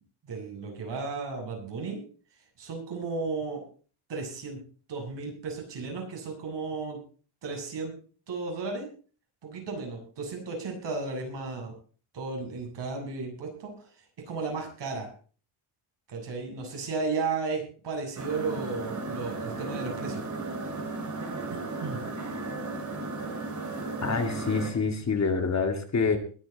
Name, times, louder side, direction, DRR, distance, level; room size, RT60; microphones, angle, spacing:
voice 1, 0.3-2.0 2.6-3.6 4.1-4.6 4.9-7.0 7.4-7.9 8.3-8.9 9.4-11.7 12.1-13.7 14.3-15.1 16.1-20.2 21.5-22.0, right 4 dB, 55° right, 1 dB, 7.3 m, -34 dB
sound 1, 18.2-24.7, right 3 dB, 35° right, 3.3 m, -35 dB
voice 2, 24.0-26.2, left 4 dB, 35° left, 6 dB, 2.2 m, -26 dB
21.5 x 9.8 x 4.1 m, 0.39 s
wide cardioid pair, 160°, 49 cm